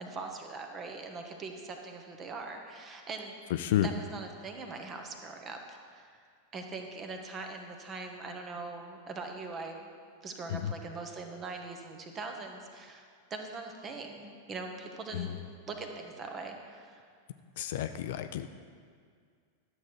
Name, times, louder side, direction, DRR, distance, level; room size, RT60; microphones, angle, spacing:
voice 1, 0.0-3.3 3.8-6.1 6.5-9.9 10.2-15.4 15.7-17.0, right 3 dB, 25° right, 4 dB, 1.2 m, -42 dB
voice 2, 17.6-18.5, left 12 dB, 55° left, 10 dB, 0.4 m, -30 dB
11.5 x 7.3 x 4.7 m, 2.1 s
figure-of-eight pair, 90°, 0 cm